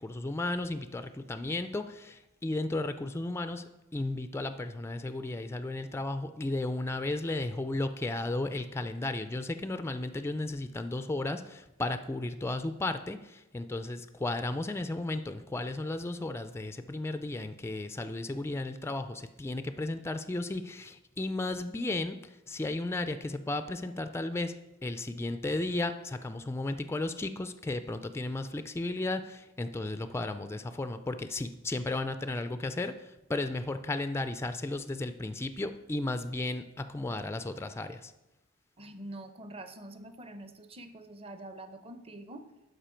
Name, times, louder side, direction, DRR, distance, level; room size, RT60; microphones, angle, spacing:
voice 1, 0.0-3.6 3.9-24.5 24.8-38.1, left 2 dB, 10° left, 9 dB, 0.3 m, -34 dB
voice 2, 38.8-42.4, right 1 dB, 25° right, 8 dB, 0.7 m, -45 dB
12.0 x 4.9 x 4.4 m, 0.99 s
head